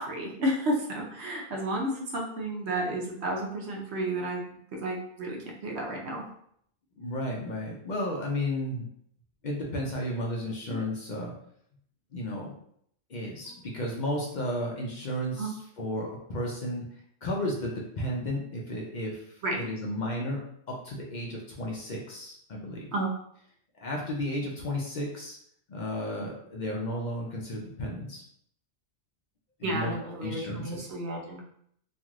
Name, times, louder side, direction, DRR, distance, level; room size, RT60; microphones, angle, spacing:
voice 1, 0.0-4.5 4.8-6.2 10.7-10.8 15.4-15.5 19.4-19.6 22.9-23.1 29.6-31.4, right 1 dB, 65° right, -1 dB, 0.9 m, -31 dB
voice 2, 7.0-8.9 9.4-11.3 12.1-12.5 13.1-20.4 20.7-22.9 23.7-25.4 25.7-28.2 29.6-29.9 30.2-30.9, left 1 dB, 55° left, -2 dB, 0.5 m, -33 dB
3.0 x 2.5 x 2.4 m, 0.68 s
omnidirectional pair, 1.2 m